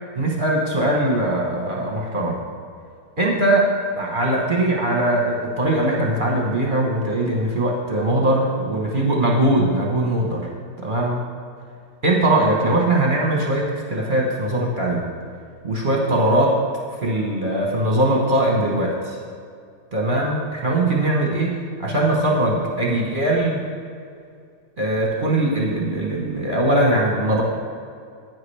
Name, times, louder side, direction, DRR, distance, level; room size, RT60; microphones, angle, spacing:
voice 1, 0.1-2.4 3.2-3.7 4.0-10.5 10.8-11.2 12.0-15.0 15.6-16.5 17.0-19.2 19.9-23.6 24.8-27.4, right 1 dB, 35° right, -2 dB, 1.0 m, -21 dB
10.5 x 9.2 x 3.4 m, 2.3 s
omnidirectional pair, 2.2 m